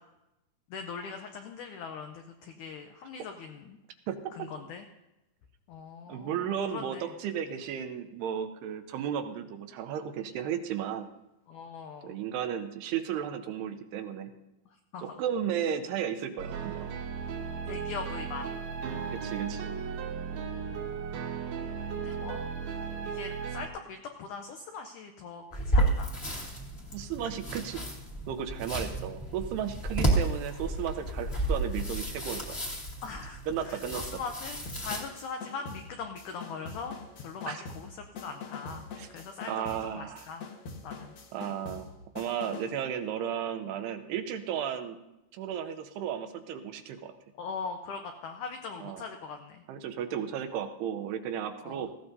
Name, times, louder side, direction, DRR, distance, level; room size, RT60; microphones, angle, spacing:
voice 1, 0.7-3.8 4.3-4.9 5.7-7.1 11.5-12.2 14.9-15.2 17.7-18.4 20.3-21.2 21.9-26.1 33.0-38.9 39.1-40.4 40.8-41.1 47.4-49.6 51.6-51.8, left 5 dB, 90° left, 5 dB, 1.7 m, -41 dB
voice 2, 4.1-4.5 6.1-11.1 12.0-14.3 15.0-16.9 19.1-19.7 26.9-27.8 28.3-32.6 33.5-34.2 37.5-37.6 39.0-39.1 39.5-40.3 41.3-41.9 42.2-45.0 45.3-47.1 48.8-49.1 49.7-51.9, right 9 dB, 90° right, 6 dB, 2.9 m, -34 dB
sound 1, 16.4-23.7, right 6 dB, 70° right, 2.6 m, -36 dB
sound 2, 25.5-35.0, right 1 dB, 25° left, 1.4 m, -32 dB
sound 3, 34.7-42.8, left 4 dB, 60° left, 2.4 m, -44 dB
18.0 x 15.5 x 2.7 m, 0.93 s
omnidirectional pair, 4.6 m